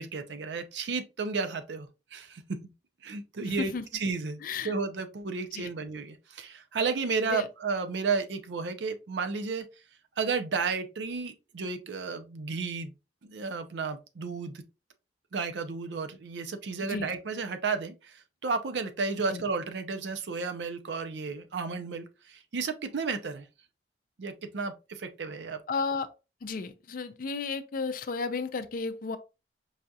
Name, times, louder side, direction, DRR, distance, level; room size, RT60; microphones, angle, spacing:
voice 1, 0.0-2.4 3.0-4.4 4.6-9.7 10.2-12.9 13.3-14.6 15.3-23.5 24.2-25.6, right 4 dB, 75° right, 0.5 m, -33 dB
voice 2, 3.5-3.8 4.4-4.7 5.6-5.7 7.3-7.4 16.8-17.1 19.3-19.4 25.7-26.1 26.4-29.2, left 4 dB, 50° left, 0.4 m, -33 dB
4.7 x 2.3 x 2.6 m
head